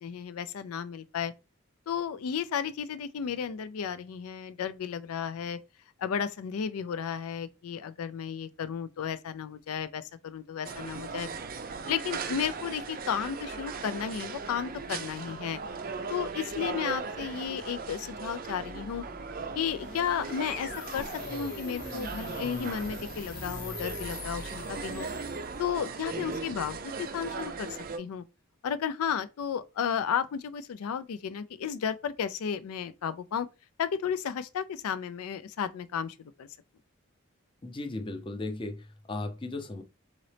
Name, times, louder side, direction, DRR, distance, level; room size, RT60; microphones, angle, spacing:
voice 1, 0.0-1.3 1.9-5.6 6.0-11.3 11.9-15.6 16.1-19.0 19.6-25.1 25.6-28.2 28.6-33.5 33.8-36.5, left 7 dB, 90° left, 0.4 m, -33 dB
sound 1, 10.6-28.0, right 4 dB, 40° right, 0.4 m, -38 dB
sound 2, 19.4-25.7, left 2 dB, 40° left, 0.9 m, -42 dB
voice 2, 37.6-39.8, left 2 dB, 25° left, 0.5 m, -36 dB
4.0 x 3.8 x 3.3 m
head